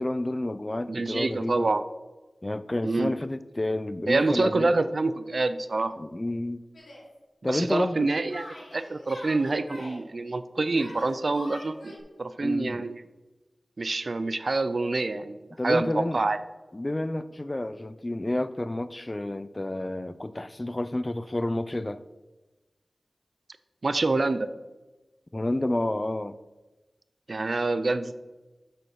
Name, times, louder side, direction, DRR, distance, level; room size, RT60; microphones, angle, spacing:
voice 1, 0.0-1.7 2.4-4.7 6.0-6.6 7.4-8.1 12.4-12.8 15.6-16.2 16.7-22.0 25.3-26.3, left 1 dB, 30° left, 0.5 m, -30 dB
voice 2, 0.9-1.8 2.8-3.1 4.1-6.0 7.4-8.5 8.7-13.0 13.8-16.4 23.8-24.5 27.3-28.2, right 3 dB, 65° right, 0.6 m, -26 dB
Yell, 6.7-7.0 8.3-10.0 10.7-12.0, left 1 dB, 90° left, 3.9 m, -43 dB
7.8 x 6.8 x 6.5 m
cardioid pair, 40°, 0 cm